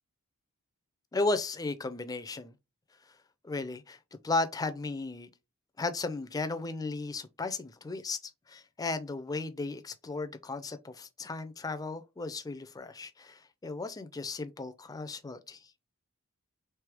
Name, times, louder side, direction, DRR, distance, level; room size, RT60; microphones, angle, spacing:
voice 1, 1.1-2.5 3.4-4.0 4.2-5.3 5.8-15.7, left 3 dB, 15° left, 0.4 m, -35 dB
3.3 x 3.1 x 3.4 m
head